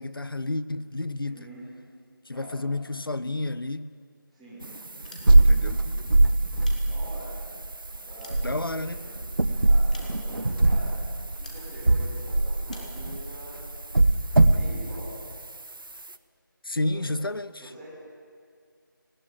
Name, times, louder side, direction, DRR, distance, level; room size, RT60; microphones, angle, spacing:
voice 1, 0.0-1.4 2.3-3.9 5.4-6.0 8.4-9.0 16.6-17.6, left 2 dB, 85° left, 0.9 m, -31 dB
voice 2, 1.2-1.6 2.3-2.6 4.3-4.7 6.7-13.7 14.2-15.3 16.9-17.2 17.6-17.9, equal, ahead, 3.0 m, -45 dB
sound 1, 4.6-15.3, right 2 dB, 75° right, 1.2 m, -22 dB
sound 2, 5.0-5.7 6.4-7.4 7.9-9.1 9.9-10.5 11.4-11.7 12.7-13.0, left 2 dB, 20° left, 1.8 m, -50 dB
19.0 x 16.0 x 9.2 m
figure-of-eight pair, 175°, 12 cm